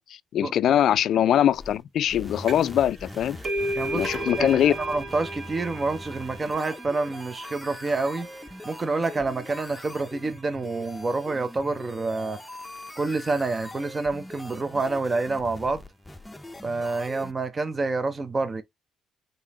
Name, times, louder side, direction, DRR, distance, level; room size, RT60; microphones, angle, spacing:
voice 1, 0.0-3.4 3.9-4.8, left 10 dB, 65° left, 0.3 m, -22 dB
sound 1, 1.3-17.3, left 1 dB, 10° left, 0.6 m, -42 dB
sound 2, 2.5-2.8 3.1-10.4, right 1 dB, 45° right, 1.5 m, -35 dB
voice 2, 3.8-8.3 8.6-12.4 13.0-15.8 16.6-18.6, right 3 dB, 30° right, 0.6 m, -28 dB
4.0 x 3.8 x 2.9 m
cardioid pair, 85°, 0 cm